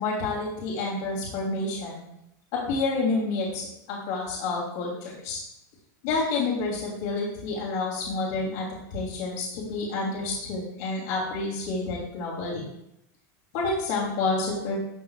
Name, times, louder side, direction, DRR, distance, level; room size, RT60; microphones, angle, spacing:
voice 1, 0.0-2.0 2.5-5.4 6.0-12.6 13.5-14.8, left 3 dB, 55° left, -4 dB, 3.0 m, -29 dB
12.0 x 6.6 x 2.4 m, 0.80 s
supercardioid pair, 160°, 10 cm